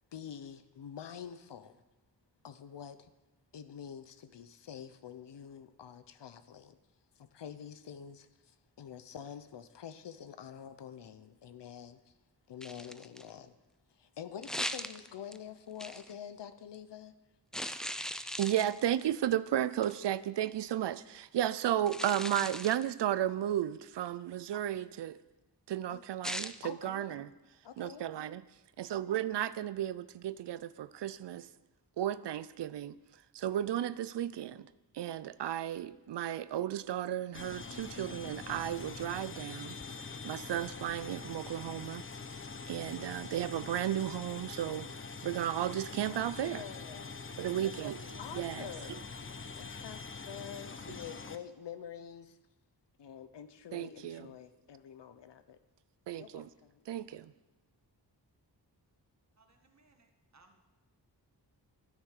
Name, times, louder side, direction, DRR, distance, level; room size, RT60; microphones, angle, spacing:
voice 1, 0.1-1.8 2.4-3.1 3.5-6.8 7.2-12.1 12.5-13.5 13.9-17.1 25.9-26.0 26.6-27.3 27.6-28.1 46.0-47.2 47.6-47.8 48.2-52.4 53.0-55.6 56.2-56.8, left 8 dB, 85° left, 0.9 m, -47 dB
sound 1, 12.6-13.3 14.4-15.4 15.8-16.1 17.5-19.0 19.8-20.1 21.9-22.9 26.2-26.5, equal, ahead, 0.4 m, -39 dB
voice 2, 18.4-25.2 25.7-27.3 27.8-28.4 28.8-31.5 32.0-33.0 33.3-34.7 34.9-39.8 40.2-42.0 42.7-44.9 45.2-46.6 47.4-48.7 53.7-54.3 56.1-56.5 56.9-57.3, right 11 dB, 80° right, 0.5 m, -34 dB
sound 2, 37.3-51.4, left 4 dB, 30° left, 0.8 m, -44 dB
voice 3, 59.4-60.7, right 3 dB, 40° right, 1.8 m, -66 dB
13.0 x 9.7 x 6.7 m
wide cardioid pair, 105°, 41 cm